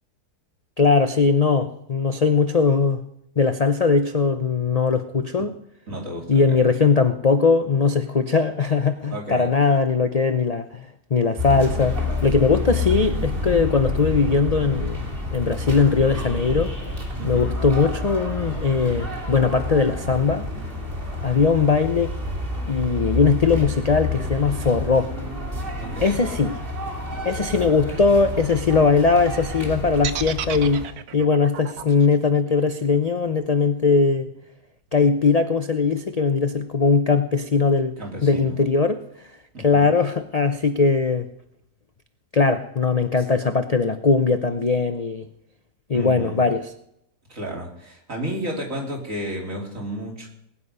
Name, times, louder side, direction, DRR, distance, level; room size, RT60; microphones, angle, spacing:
voice 1, 0.8-3.0 3.4-5.5 6.3-15.1 15.3-16.7 17.2-20.5 21.2-22.2 22.7-25.1 26.0-26.6 27.2-30.9 31.1-34.3 34.9-38.0 38.2-39.3 39.6-41.3 42.3-45.3 45.9-46.7, left 4 dB, 50° left, 9 dB, 0.4 m, -20 dB
voice 2, 5.9-6.6 9.1-9.5 17.2-17.6 25.8-26.2 27.5-28.0 38.0-38.7 39.5-39.9 45.9-46.4 47.3-50.3, equal, 50° right, -1 dB, 3.7 m, -33 dB
sound 1, 11.4-30.9, left 2 dB, 30° right, 3.0 m, -29 dB
sound 2, 30.0-34.1, right 9 dB, 70° right, 1.2 m, -33 dB
19.5 x 9.7 x 5.5 m, 0.77 s
omnidirectional pair, 1.8 m